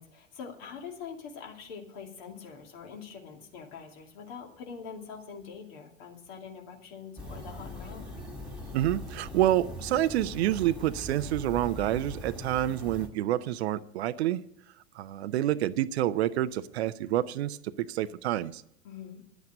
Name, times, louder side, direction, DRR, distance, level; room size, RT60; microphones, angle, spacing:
voice 1, 0.0-8.1 18.8-19.2, left 6 dB, 50° left, 2 dB, 2.7 m, -44 dB
sound 1, 7.2-13.1, left 1 dB, ahead, 2.3 m, -41 dB
voice 2, 8.7-14.4 14.9-18.6, right 13 dB, 55° right, 15 dB, 0.7 m, -28 dB
10.5 x 8.1 x 8.3 m, 0.74 s
figure-of-eight pair, 90°, 38 cm